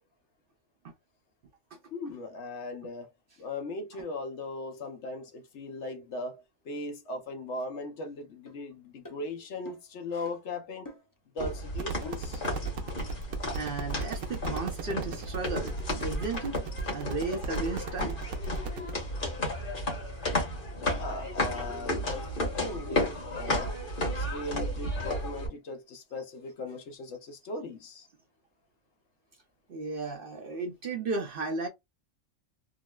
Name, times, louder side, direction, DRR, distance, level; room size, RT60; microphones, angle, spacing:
voice 1, 1.9-3.1 3.4-10.9 11.3-12.4 20.7-23.7 24.2-28.1, left 2 dB, 65° left, 1.0 m, -38 dB
sound 1, 8.5-8.6 9.0-9.2 9.7-9.9 10.2-10.4 10.9-11.2 11.5-11.6 12.1-12.3 12.6-12.8, left 2 dB, 25° left, 0.5 m, -47 dB
sound 2, 11.4-25.5, left 1 dB, 40° left, 1.5 m, -33 dB
sound 3, 11.7-18.9, right 4 dB, 90° right, 1.1 m, -37 dB
voice 2, 13.6-16.6 16.9-18.1 29.7-31.7, right 3 dB, 55° right, 0.7 m, -34 dB
3.8 x 2.0 x 2.2 m
omnidirectional pair, 1.3 m